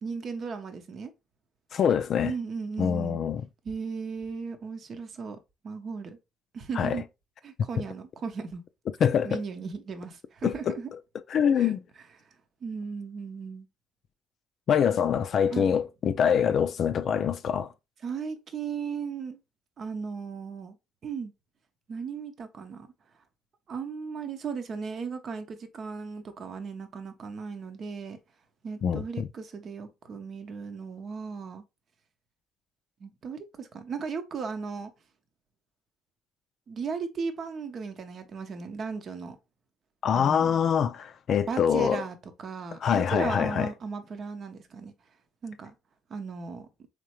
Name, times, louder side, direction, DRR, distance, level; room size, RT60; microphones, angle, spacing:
voice 1, 0.0-1.1 2.2-3.2 3.6-5.4 5.6-6.2 6.5-7.0 7.4-8.6 9.2-10.9 11.6-11.7 12.6-13.7 15.5-15.7 18.0-19.4 19.8-20.8 21.0-21.3 21.9-22.9 23.7-28.2 28.6-31.6 33.0-34.9 36.7-39.4 40.1-40.5 41.5-44.9 45.4-45.7 46.1-46.7, right 5 dB, 50° right, 0.7 m, -36 dB
voice 2, 1.7-2.3 2.8-3.4 6.8-7.0 9.0-9.4 10.4-10.8 11.3-11.8 14.7-17.7 28.8-29.3 40.0-42.0 42.8-43.7, left 8 dB, 55° left, 0.3 m, -25 dB
3.6 x 3.2 x 3.1 m
hypercardioid pair, 55°, 0 cm